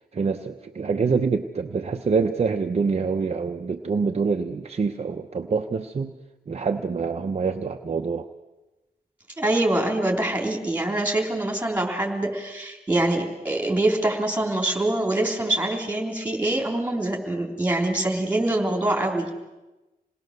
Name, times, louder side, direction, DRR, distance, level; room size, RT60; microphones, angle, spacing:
voice 1, 0.1-6.1 6.5-8.3, right 5 dB, 40° right, 3 dB, 0.7 m, -25 dB
voice 2, 9.4-19.3, right 1 dB, 10° right, 1 dB, 3.6 m, -24 dB
27.5 x 19.5 x 6.7 m, 1.1 s
wide cardioid pair, 175°, 16 cm